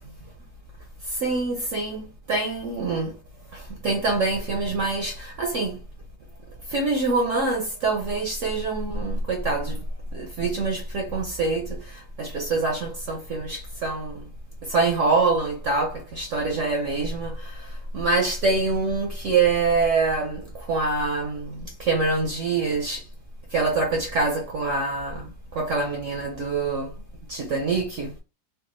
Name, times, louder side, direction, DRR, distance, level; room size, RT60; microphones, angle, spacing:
voice 1, 1.2-3.1 3.5-5.8 6.7-9.8 10.1-11.8 12.2-14.1 14.7-17.5 17.9-23.0 23.5-25.3 25.5-26.9 27.3-28.2, right 3 dB, 65° right, 0.8 m, -25 dB
3.5 x 2.2 x 3.0 m
omnidirectional pair, 1.8 m